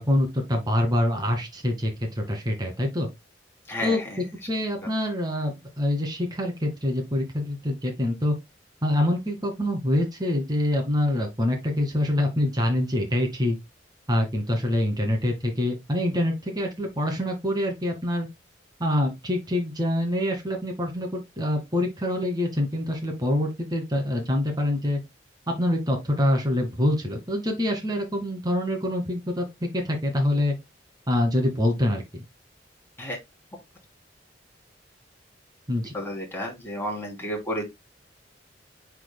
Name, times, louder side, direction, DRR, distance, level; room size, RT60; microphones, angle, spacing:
voice 1, 0.0-3.1 3.8-8.3 8.8-13.6 14.1-18.3 18.8-25.0 25.5-29.5 29.7-30.5 31.1-32.2 35.7-35.9, left 1 dB, 20° right, 2.0 m, -25 dB
voice 2, 35.9-37.7, equal, 15° left, 3.1 m, -31 dB
9.8 x 4.6 x 2.2 m
head